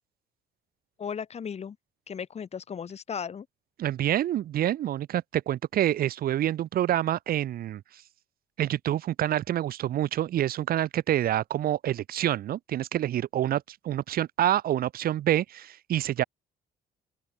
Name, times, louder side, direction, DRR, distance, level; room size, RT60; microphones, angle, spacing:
voice 1, 1.0-1.8 2.1-3.5, left 7 dB, 40° left, 5.1 m, -36 dB
voice 2, 3.8-7.8 8.6-16.2, right 12 dB, 60° right, 1.9 m, -27 dB
open air
cardioid pair, 110°, 17 cm